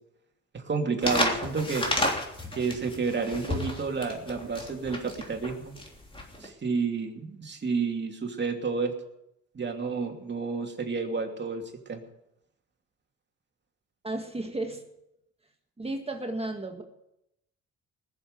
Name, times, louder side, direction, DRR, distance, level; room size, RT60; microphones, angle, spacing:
voice 1, 0.5-1.9 2.5-5.7 6.4-9.0 9.5-11.6 11.9-12.0, right 4 dB, 35° right, 2 dB, 2.8 m, -30 dB
sound 1, 1.0-6.5, left 1 dB, 15° left, 3.3 m, -31 dB
voice 2, 14.0-14.8 15.8-16.8, right 2 dB, 20° right, 4 dB, 1.8 m, -33 dB
20.0 x 7.3 x 8.1 m, 0.84 s
cardioid pair, 90°, 30 cm